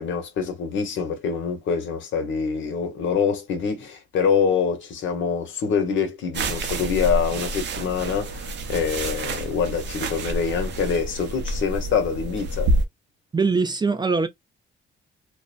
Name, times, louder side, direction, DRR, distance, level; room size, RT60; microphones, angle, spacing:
voice 1, 0.0-12.7, left 6 dB, 70° left, 1.0 m, -25 dB
sound 1, 6.3-12.8, right 1 dB, 60° right, 0.7 m, -28 dB
voice 2, 13.3-14.3, right 4 dB, 20° right, 0.4 m, -22 dB
2.5 x 2.1 x 2.4 m
cardioid pair, 90°, 20 cm